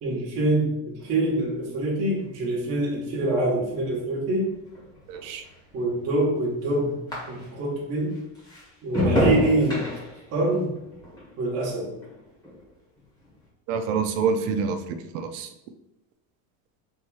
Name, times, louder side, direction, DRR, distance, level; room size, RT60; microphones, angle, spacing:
voice 1, 0.0-4.6 5.7-7.0 7.3-8.2 8.8-9.9 10.3-10.7 11.4-11.9, right 2 dB, 40° right, -4 dB, 1.2 m, -25 dB
sound 1, 1.0-7.8 8.1-12.7 13.0-13.5, left 1 dB, 10° left, 1.6 m, -31 dB
voice 2, 5.1-5.4 13.7-15.5, right 5 dB, 90° right, 8 dB, 0.7 m, -27 dB
3.5 x 3.1 x 4.7 m, 0.89 s
cardioid pair, 145°, 38 cm